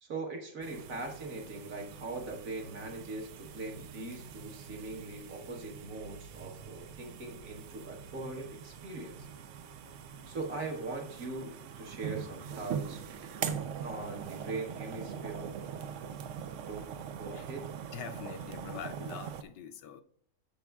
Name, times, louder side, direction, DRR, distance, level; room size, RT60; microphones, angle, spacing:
voice 1, 0.0-9.3 10.3-13.0 13.8-15.5 16.6-17.7, right 3 dB, 50° right, 2 dB, 1.4 m, -41 dB
sound 1, 0.6-19.4, right 7 dB, 90° right, 0.6 m, -42 dB
voice 2, 17.9-20.0, left 7 dB, 75° left, 8 dB, 1.2 m, -44 dB
14.0 x 6.1 x 2.3 m, 0.64 s
omnidirectional pair, 2.0 m